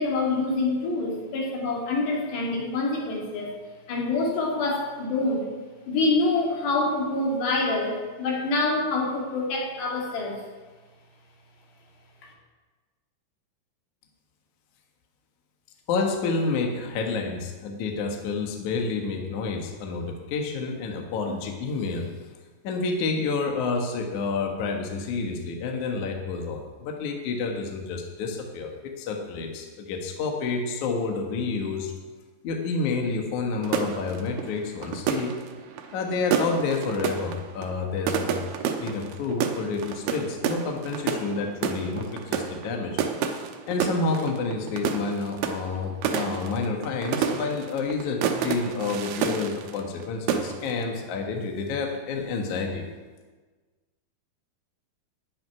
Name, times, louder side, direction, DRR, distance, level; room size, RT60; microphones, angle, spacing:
voice 1, 0.0-3.6 3.9-5.5 5.9-10.4, left 2 dB, 80° left, -2 dB, 4.6 m, -26 dB
voice 2, 15.9-22.1 22.6-31.9 32.4-35.3 35.9-38.4 38.8-43.0 43.7-52.8, left 4 dB, 60° left, 2 dB, 2.4 m, -29 dB
sound 1, 33.6-50.0 50.3-50.8, right 7 dB, 75° right, 2.7 m, -30 dB
13.0 x 6.3 x 9.8 m, 1.3 s
omnidirectional pair, 4.8 m